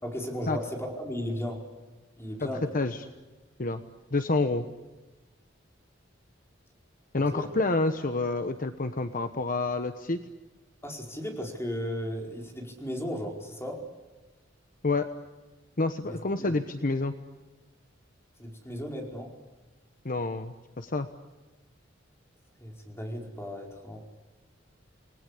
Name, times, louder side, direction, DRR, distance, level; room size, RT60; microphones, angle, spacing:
voice 1, 0.0-1.6 2.2-2.7 7.3-7.5 10.8-13.8 16.0-16.5 18.4-19.3 22.6-24.0, equal, 15° left, 1 dB, 4.9 m, -35 dB
voice 2, 4.1-4.6 7.1-10.2 14.8-15.1 15.8-17.1 20.0-21.1, left 3 dB, 45° left, 8 dB, 1.1 m, -28 dB
29.0 x 20.0 x 8.5 m, 1.2 s
head